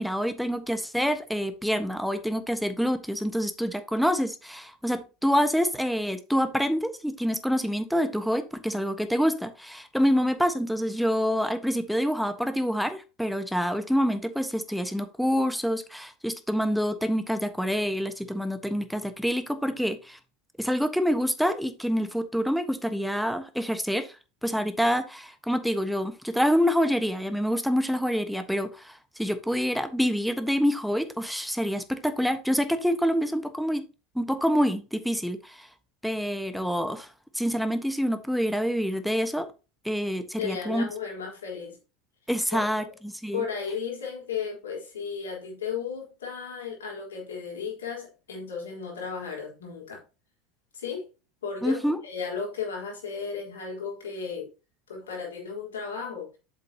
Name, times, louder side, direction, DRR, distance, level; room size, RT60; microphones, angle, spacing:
voice 1, 0.0-20.2 20.6-24.1 24.4-33.8 34.1-35.7 36.0-37.1 37.3-39.5 39.8-40.9 42.3-43.4 51.6-52.0, equal, ahead, 1.3 m, -27 dB
voice 2, 40.4-41.8 42.5-42.9 43.3-50.0 50.7-51.1 51.4-54.5 54.9-56.3, left 6 dB, 80° left, 4.2 m, -34 dB
7.9 x 7.6 x 2.9 m
hypercardioid pair, 80°, 0 cm